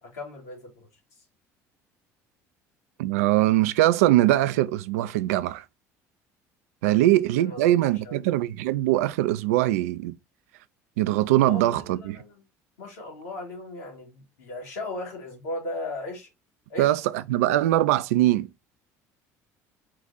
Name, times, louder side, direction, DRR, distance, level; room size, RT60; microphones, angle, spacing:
voice 1, 0.0-0.9 6.8-7.0 7.4-8.2 11.4-12.4 12.8-16.3 16.7-16.9, left 2 dB, 85° left, 2.1 m, -37 dB
voice 2, 3.0-5.6 6.8-10.1 11.0-12.2 16.8-18.5, right 15 dB, 80° right, 0.4 m, -22 dB
4.7 x 2.4 x 4.0 m
hypercardioid pair, 70°, 8 cm